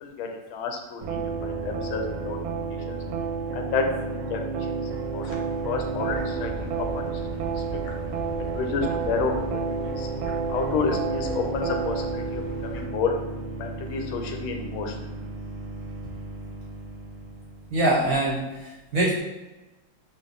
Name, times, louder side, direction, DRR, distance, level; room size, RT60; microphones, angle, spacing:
voice 1, 0.0-2.4 2.9-3.0 3.5-4.4 4.7-5.2 5.6-7.1 8.4-10.1 10.5-13.1 13.6-15.1, left 5 dB, 85° left, 3 dB, 1.4 m, -30 dB
sound 1, 1.0-17.8, right 4 dB, 85° right, 1.4 m, -31 dB
sound 2, 4.8-12.8, right 2 dB, 65° left, 1.2 m, -40 dB
voice 2, 17.7-19.2, right 1 dB, 60° right, -4 dB, 0.9 m, -24 dB
4.4 x 2.4 x 3.4 m, 1.1 s
omnidirectional pair, 2.2 m